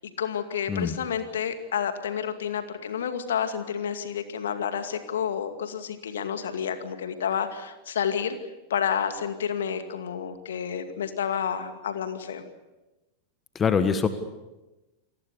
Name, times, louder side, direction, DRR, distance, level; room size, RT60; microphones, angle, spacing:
voice 1, 0.2-8.4 8.7-12.4, left 8 dB, 65° left, 8 dB, 2.3 m, -30 dB
voice 2, 13.5-14.1, left 6 dB, 20° left, 11 dB, 1.5 m, -23 dB
29.0 x 20.0 x 6.9 m, 1.1 s
figure-of-eight pair, 90°, 0 cm